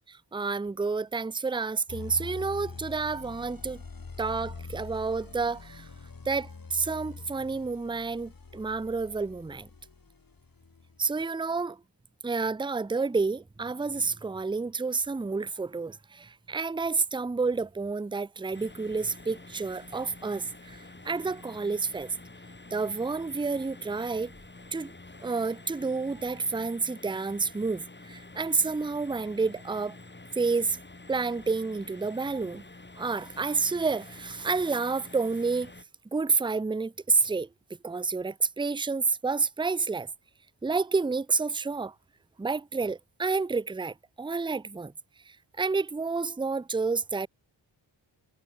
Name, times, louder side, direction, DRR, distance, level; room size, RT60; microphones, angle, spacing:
voice 1, 0.3-3.8 4.2-5.8 6.3-9.7 11.0-11.8 12.2-20.8 21.0-22.1 22.7-24.3 24.7-24.9 25.2-29.9 30.4-30.8 31.1-32.6 33.0-35.7 36.1-37.5 37.8-40.1 40.6-41.9 42.4-44.9 45.6-47.3, right 4 dB, 10° right, 0.6 m, -29 dB
sound 1, 1.9-11.0, left 4 dB, 50° left, 5.5 m, -44 dB
sound 2, 18.5-35.8, left 2 dB, 25° left, 3.1 m, -48 dB
cardioid pair, 60°, 45 cm